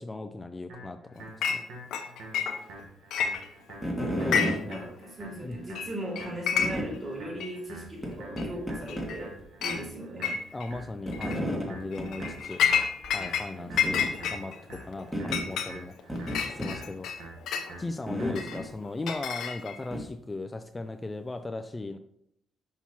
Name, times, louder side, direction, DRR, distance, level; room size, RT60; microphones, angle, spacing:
voice 1, 0.0-1.6 4.2-4.8 5.4-5.6 10.5-12.6 13.1-14.0 14.3-14.5 14.8-16.2 16.5-17.1 17.8-22.0, left 2 dB, 20° left, 7 dB, 0.4 m, -37 dB
sound 1, 0.7-18.7, right 2 dB, 85° right, 1.3 m, -47 dB
Chink clink, 1.4-1.6 1.9-2.8 3.1-3.8 4.2-4.8 5.0-5.1 5.7-5.9 6.1-7.0 7.4-7.5 8.4-8.5 8.9-9.2 9.6-9.8 10.2-10.7 11.1-11.4 11.9-13.5 13.8-17.7 18.3-19.9, left 7 dB, 75° left, 0.7 m, -29 dB
sound 2, 3.8-4.6 5.5-5.6 6.6-6.9 8.0-8.1 8.4-9.1 9.4-9.5 11.1-11.7 12.0-12.3 12.6-12.7 13.0-13.1 13.7-14.1 15.1-15.4 16.1-16.7 18.1-18.6 19.9-20.0, equal, 10° right, 1.8 m, -31 dB
voice 2, 4.7-9.3 9.6-10.4 13.5-14.0, equal, 35° right, -3 dB, 2.6 m, -38 dB
5.9 x 5.7 x 2.9 m, 0.74 s
cardioid pair, 90°, 0 cm